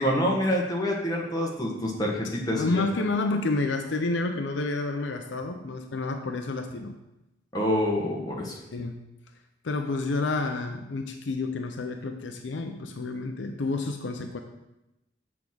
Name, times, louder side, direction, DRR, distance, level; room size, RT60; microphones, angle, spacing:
voice 1, 0.0-2.8 7.5-8.6, equal, 20° left, -2 dB, 1.3 m, -27 dB
voice 2, 2.5-7.0 8.7-9.0 9.6-14.4, left 3 dB, 75° left, 5 dB, 0.6 m, -29 dB
7.0 x 3.6 x 6.1 m, 0.94 s
head